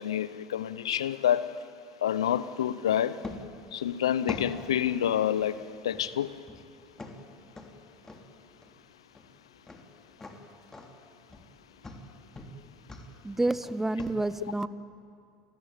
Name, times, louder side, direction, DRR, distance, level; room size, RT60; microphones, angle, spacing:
voice 1, 0.0-1.5 2.0-3.2 3.7-5.6 5.8-6.3, left 10 dB, 85° left, 16 dB, 0.8 m, -28 dB
sound 1, 3.2-14.1, left 2 dB, 20° left, 3.4 m, -45 dB
voice 2, 13.2-14.7, right 2 dB, 10° right, 15 dB, 1.0 m, -29 dB
29.0 x 20.0 x 9.1 m, 2.3 s
hypercardioid pair, 70°, 3 cm